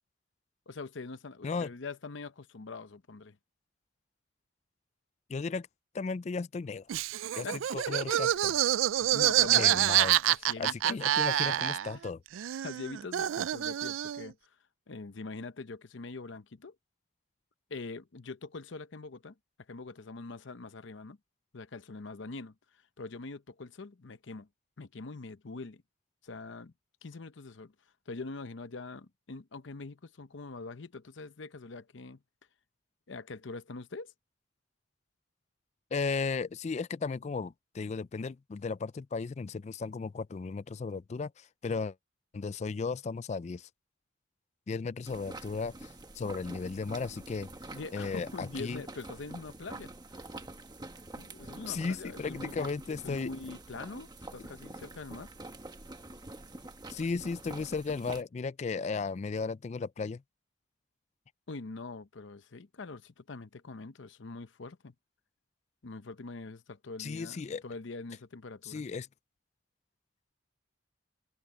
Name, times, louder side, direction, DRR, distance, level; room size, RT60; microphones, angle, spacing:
voice 1, 0.7-3.4 7.4-7.6 7.9-8.2 9.0-9.9 10.3-11.2 11.4-11.6 12.6-14.6 14.9-16.7 17.7-19.3 19.7-21.2 21.5-22.5 23.0-24.5 24.8-25.8 26.2-26.7 27.0-27.7 28.1-32.2 33.1-34.1 47.7-50.3 51.2-52.7 53.0-55.3 61.5-64.9 65.8-67.4 67.6-68.8, left 3 dB, 70° left, 0.7 m, -43 dB
voice 2, 5.3-5.7 5.9-6.9 7.3-7.5 7.7-8.3 9.5-10.2 10.6-12.2 35.9-41.9 42.3-43.7 44.7-47.5 47.9-48.8 51.7-53.3 56.9-60.2 67.0-67.6 68.6-69.1, left 4 dB, 35° left, 0.3 m, -35 dB
Laughter, 6.9-12.1 12.3-14.3, right 12 dB, 85° right, 0.3 m, -27 dB
sound 1, 45.1-58.2, right 2 dB, 20° right, 1.3 m, -46 dB
open air
head